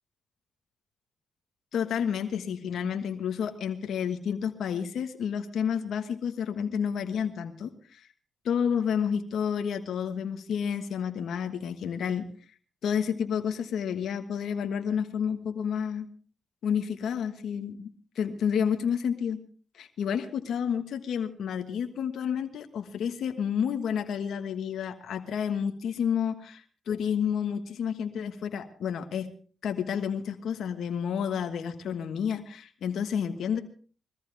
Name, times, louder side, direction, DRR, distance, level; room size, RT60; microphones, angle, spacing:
voice 1, 1.7-8.1 8.4-12.2 12.8-16.1 16.6-19.4 19.7-29.3 29.6-33.6, left 7 dB, 80° left, 7 dB, 1.4 m, -30 dB
22.0 x 14.5 x 3.4 m, 0.40 s
cardioid pair, 65°, 0 cm